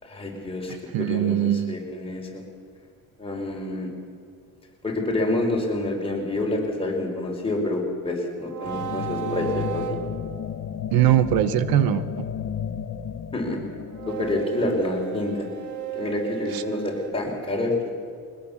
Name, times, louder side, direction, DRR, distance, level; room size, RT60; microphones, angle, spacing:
voice 1, 0.0-2.4 3.2-3.9 4.8-10.0 13.3-13.6 14.1-15.3 15.9-17.9, left 2 dB, 15° left, -2 dB, 4.8 m, -28 dB
voice 2, 0.9-1.8 10.9-12.3 16.5-16.6, right 12 dB, 85° right, 13 dB, 1.0 m, -21 dB
sound 1, 8.4-10.7 13.9-17.1, right 10 dB, 55° right, 1.2 m, -35 dB
sound 2, 8.6-15.4, left 8 dB, 50° left, 1.1 m, -33 dB
22.0 x 20.5 x 7.2 m, 2.2 s
cardioid pair, 120°, 35 cm